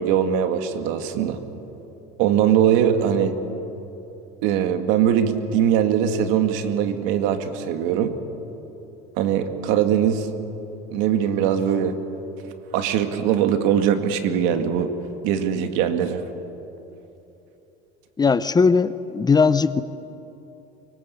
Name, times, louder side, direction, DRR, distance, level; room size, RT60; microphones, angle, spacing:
voice 1, 0.0-1.4 2.2-3.3 4.4-8.2 9.2-10.3 10.9-12.0 12.7-14.9 15.2-16.2, right 9 dB, 75° right, 7 dB, 2.3 m, -21 dB
voice 2, 18.2-19.8, left 5 dB, 20° left, 14 dB, 0.7 m, -18 dB
24.0 x 24.0 x 8.5 m, 3.0 s
supercardioid pair, 110°, 21 cm